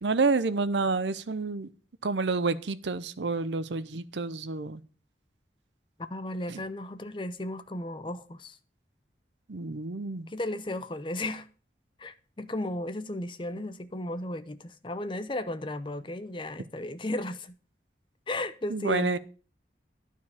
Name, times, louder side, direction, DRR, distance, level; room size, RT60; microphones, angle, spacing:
voice 1, 0.0-1.7 2.0-4.8 6.5-6.6 9.5-10.3 18.7-19.2, right 3 dB, 80° right, 0.7 m, -29 dB
voice 2, 6.1-8.6 10.3-11.5 12.0-17.5 18.3-19.2, left 1 dB, 25° left, 0.7 m, -35 dB
12.0 x 4.6 x 7.1 m
head